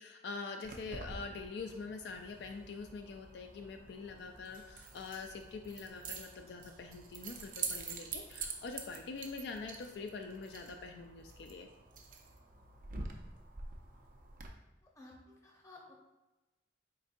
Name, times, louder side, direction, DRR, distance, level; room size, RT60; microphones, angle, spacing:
voice 1, 0.0-11.7, left 4 dB, 65° left, 5 dB, 0.3 m, -44 dB
Keys jangling, 0.6-14.5, right 5 dB, 45° right, 0.5 m, -47 dB
voice 2, 14.8-15.9, left 2 dB, 15° left, -2 dB, 0.7 m, -55 dB
4.3 x 4.0 x 2.5 m, 1.1 s
head